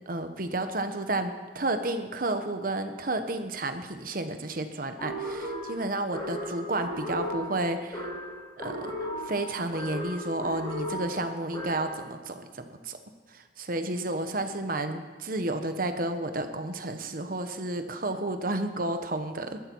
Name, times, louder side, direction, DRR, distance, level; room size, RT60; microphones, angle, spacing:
voice 1, 0.1-8.1 8.6-13.0 13.3-19.6, right 2 dB, 50° right, 7 dB, 1.2 m, -31 dB
sound 1, 5.0-12.0, equal, 25° left, 6.6 m, -36 dB
20.5 x 13.5 x 4.7 m, 1.3 s
head